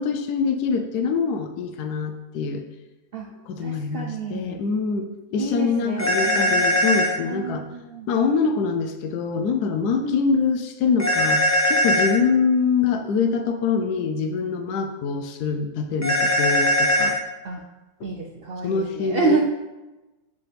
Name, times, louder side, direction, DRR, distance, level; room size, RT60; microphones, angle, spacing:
voice 1, 0.0-2.6 3.5-7.6 8.1-17.2 18.6-19.4, left 5 dB, 85° left, 6 dB, 1.2 m, -24 dB
voice 2, 3.6-4.6 5.4-6.7 7.2-8.1 10.0-10.2 17.4-17.7 18.0-19.4, right 4 dB, 75° right, 1 dB, 0.5 m, -28 dB
sound 1, 6.0-7.1 11.0-12.1 16.0-17.2, equal, 15° left, 0.8 m, -20 dB
7.8 x 5.3 x 3.4 m, 1.1 s
omnidirectional pair, 1.7 m